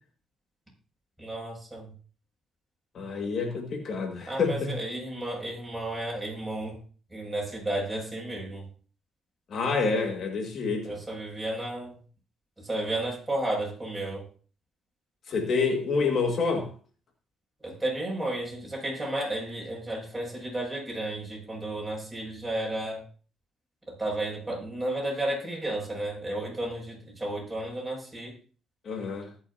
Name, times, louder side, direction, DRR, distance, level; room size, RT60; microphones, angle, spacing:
voice 1, 1.2-1.9 4.2-6.8 7.1-8.7 10.8-11.9 12.6-14.3 17.6-23.0 23.9-28.3, right 1 dB, 10° right, -3 dB, 7.0 m, -33 dB
voice 2, 2.9-4.7 9.5-11.0 15.3-16.7 28.9-29.3, left 4 dB, 60° left, 2 dB, 2.1 m, -28 dB
20.0 x 7.0 x 2.9 m, 0.39 s
cardioid pair, 90°, 0 cm